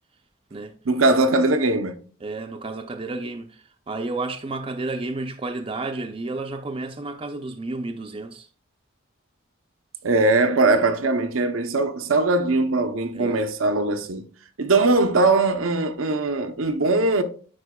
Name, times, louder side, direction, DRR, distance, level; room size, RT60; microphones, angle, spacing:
voice 1, 0.9-2.0 10.0-14.2 14.6-17.2, right 2 dB, 90° right, 0.7 m, -20 dB
voice 2, 2.2-8.5 13.1-13.4 16.5-16.6, right 2 dB, 25° right, 0.4 m, -31 dB
9.6 x 4.4 x 2.2 m
head